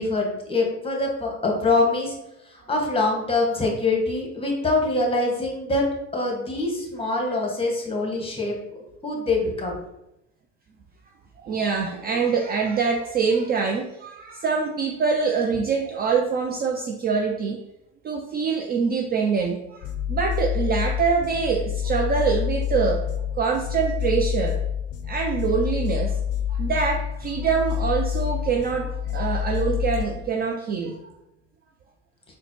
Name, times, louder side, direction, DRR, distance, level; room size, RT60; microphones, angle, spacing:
voice 1, 0.0-2.1 2.5-5.8 6.1-8.6 9.0-9.8, left 2 dB, 15° left, 0 dB, 1.1 m, -24 dB
voice 2, 11.4-17.6 18.0-23.0 23.4-24.6 25.1-26.2 26.5-31.0, right 5 dB, 30° right, 2 dB, 0.4 m, -24 dB
sound 1, 19.8-30.0, left 9 dB, 45° left, 0.5 m, -27 dB
3.9 x 2.1 x 3.0 m, 0.86 s
hypercardioid pair, 70°, 34 cm